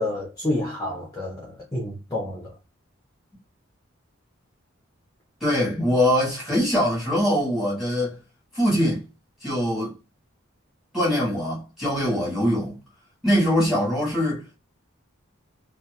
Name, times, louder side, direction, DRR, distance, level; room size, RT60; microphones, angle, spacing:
voice 1, 0.0-2.6 5.8-6.0, left 1 dB, 20° left, 0.5 m, -29 dB
voice 2, 5.4-8.2 8.5-9.0 9.4-9.9 10.9-12.8 13.2-14.6, equal, ahead, 1.3 m, -23 dB
2.7 x 2.2 x 2.3 m
head